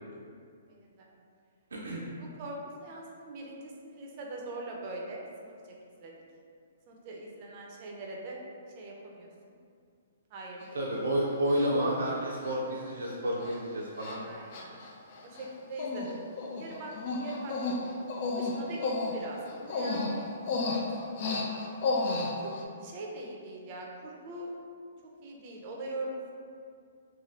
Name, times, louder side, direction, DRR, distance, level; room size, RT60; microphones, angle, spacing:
voice 1, 0.7-1.1 2.2-5.7 6.0-6.1 6.9-8.4 8.7-9.3 10.3-11.0 14.2-14.8 15.2-16.2 16.6-17.9 18.3-20.3 20.8-21.5 22.4-22.5 22.8-24.5 25.2-26.3, right 2 dB, 40° right, -1 dB, 0.5 m, -42 dB
voice 2, 1.7-2.0 10.7-14.2, equal, 90° right, -3 dB, 0.4 m, -30 dB
Human voice, 10.6-10.7 11.5-11.9 12.4-12.5 12.9-13.1 13.4-13.6 14.0-14.2 14.5-15.5 15.8-16.1 16.4-22.6, left 3 dB, 45° left, 0.4 m, -32 dB
2.6 x 2.4 x 3.1 m, 2.3 s
hypercardioid pair, 145°, 0 cm